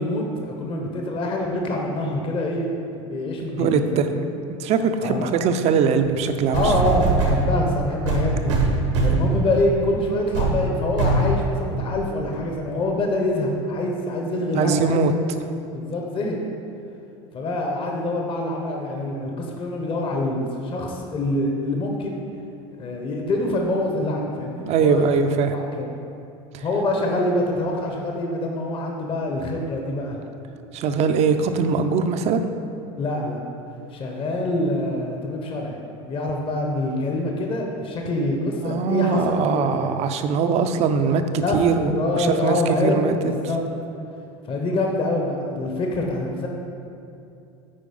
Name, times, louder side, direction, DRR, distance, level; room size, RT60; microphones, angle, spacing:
voice 1, 0.0-4.1 5.0-5.3 6.5-8.5 9.0-15.1 15.7-16.4 17.3-22.2 22.8-25.2 25.5-25.9 26.5-30.2 33.0-33.4 33.9-40.1 41.3-43.6 44.5-46.5, left 1 dB, 35° left, 1 dB, 1.1 m, -25 dB
voice 2, 3.6-6.7 14.5-15.1 24.7-25.5 26.5-26.6 30.7-32.5 38.6-41.2 41.5-43.1, right 5 dB, 45° right, 8 dB, 0.6 m, -21 dB
sound 1, 6.0-6.1 6.5-7.4 8.1-9.3 9.8-10.0 10.3-10.6 11.0-11.3 12.0-12.1, right 4 dB, 90° right, 1.5 m, -21 dB
8.8 x 4.5 x 5.4 m, 2.6 s
supercardioid pair, 110°, 15 cm